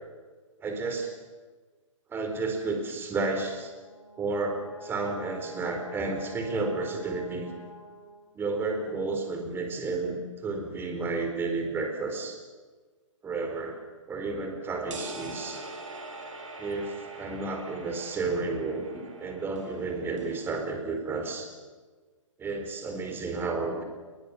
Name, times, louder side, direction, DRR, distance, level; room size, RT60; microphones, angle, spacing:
voice 1, 0.6-1.1 2.1-3.7 4.2-7.5 8.3-12.4 13.2-13.8 14.1-15.6 16.6-21.5 22.4-23.8, right 3 dB, 15° right, 5 dB, 4.2 m, -31 dB
Brass instrument, 3.5-8.5, equal, 75° left, 5.2 m, -48 dB
sound 1, 14.9-20.5, right 2 dB, 70° right, 6.6 m, -43 dB
29.0 x 22.0 x 7.0 m, 1.4 s
figure-of-eight pair, 130°, 17 cm